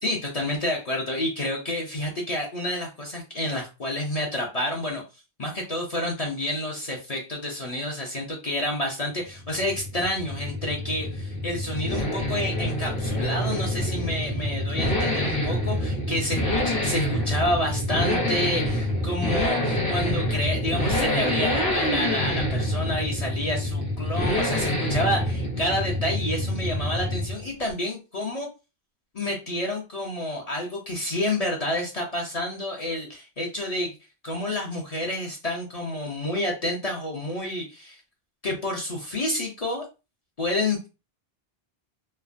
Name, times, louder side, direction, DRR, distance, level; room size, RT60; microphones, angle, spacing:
voice 1, 0.0-5.0 5.4-28.5 29.1-34.0 34.2-38.0 38.4-39.8 40.4-40.9, left 1 dB, 45° left, -1 dB, 0.6 m, -29 dB
Accelerating revving vroom, 9.3-27.4 27.7-27.8, left 1 dB, 90° left, 1.2 m, -27 dB
3.2 x 2.0 x 2.4 m, 0.29 s
omnidirectional pair, 1.0 m